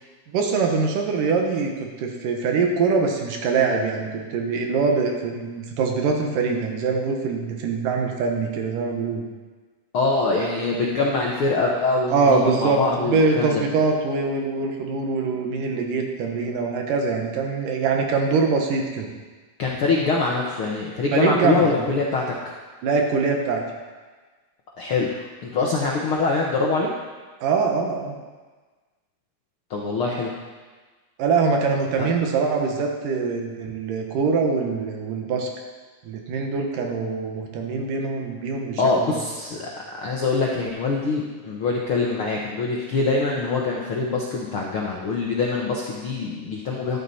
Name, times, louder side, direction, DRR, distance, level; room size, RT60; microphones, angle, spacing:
voice 1, 0.3-9.2 12.1-19.1 21.1-21.8 22.8-23.6 27.4-28.1 31.2-35.5 36.1-39.2, right 4 dB, 75° right, 2 dB, 2.9 m, -23 dB
voice 2, 9.9-13.6 19.6-22.5 24.8-26.9 29.7-30.3 32.0-32.1 38.8-39.7 40.0-47.0, left 3 dB, 65° left, -2 dB, 1.3 m, -24 dB
13.0 x 11.0 x 4.2 m, 1.4 s
omnidirectional pair, 4.0 m